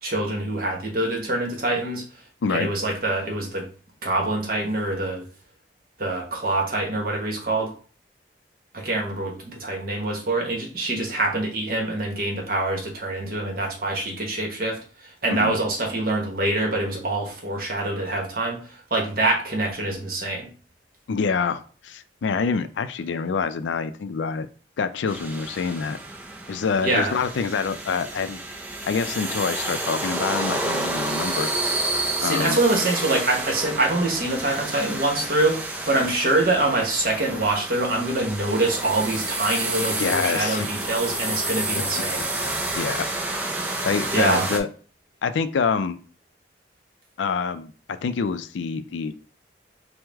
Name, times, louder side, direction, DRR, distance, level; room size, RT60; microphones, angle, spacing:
voice 1, 0.0-2.0 2.5-3.7 4.0-5.2 6.0-7.7 8.7-20.5 26.8-27.1 32.2-42.2 44.1-44.4, right 2 dB, 50° right, 1 dB, 1.0 m, -25 dB
voice 2, 21.1-24.5 24.8-26.0 26.5-28.4 28.9-31.9 32.2-32.6 40.0-40.7 42.8-43.1 43.8-44.7 45.2-46.0 47.2-49.1, left 5 dB, 85° left, 11 dB, 0.4 m, -26 dB
sound 1, 25.1-44.6, right 2 dB, 10° right, 0.3 m, -29 dB
4.6 x 2.1 x 3.5 m, 0.39 s
head